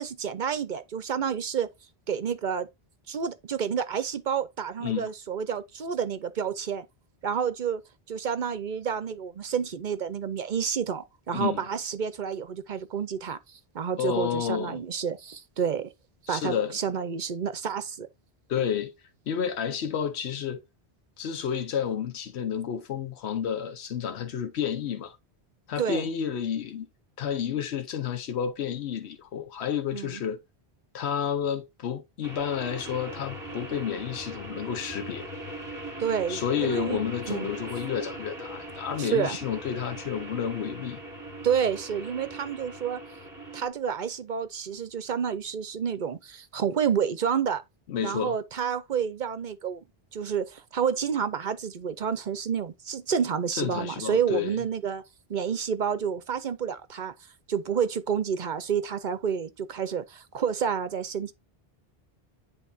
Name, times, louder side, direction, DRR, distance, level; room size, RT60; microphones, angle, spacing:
voice 1, 0.0-1.7 2.1-2.7 3.1-6.9 7.2-7.8 8.1-15.9 16.3-18.1 25.8-26.1 29.9-30.2 36.0-37.0 37.3-37.5 39.0-39.4 41.4-43.0 43.5-47.6 48.0-49.8 50.1-55.0 55.3-57.1 57.5-61.3, right 7 dB, 55° right, 0.7 m, -29 dB
voice 2, 11.3-11.6 14.0-14.8 16.3-16.8 18.5-18.9 19.3-20.6 21.2-25.2 25.7-26.9 27.2-30.4 30.9-35.3 36.3-41.0 47.9-48.4 53.6-54.6, left 8 dB, 85° left, 1.0 m, -30 dB
sound 1, 32.2-43.7, right 1 dB, 20° right, 1.7 m, -40 dB
10.5 x 3.6 x 2.6 m
omnidirectional pair, 1.1 m